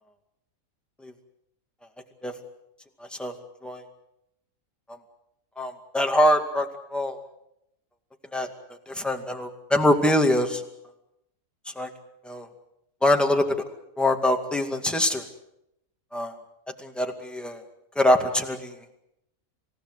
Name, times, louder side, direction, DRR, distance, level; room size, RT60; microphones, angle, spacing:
voice 1, 5.6-7.2 8.3-8.5 8.9-10.6 11.8-11.9 12.2-12.5 13.0-13.4 14.0-15.2 16.1-16.3 16.8-17.6 18.0-18.7, left 1 dB, ahead, 3 dB, 2.1 m, -23 dB
27.5 x 17.0 x 8.1 m, 0.83 s
omnidirectional pair, 1.5 m